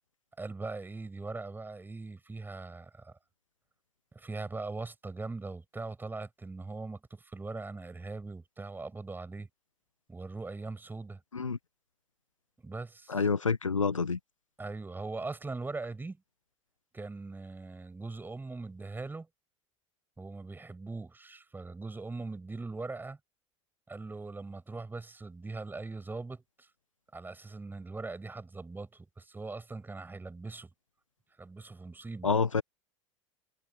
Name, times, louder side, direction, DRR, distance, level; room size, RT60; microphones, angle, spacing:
voice 1, 0.4-3.1 4.1-9.5 10.1-11.2 12.6-13.2 14.6-16.2 16.9-19.3 20.2-23.2 23.9-26.7 27.1-30.7 31.4-32.3, right 3 dB, 10° right, 7.9 m, -41 dB
voice 2, 13.1-14.2 32.2-32.6, left 5 dB, 85° left, 0.7 m, -28 dB
figure-of-eight pair, 80°, 16 cm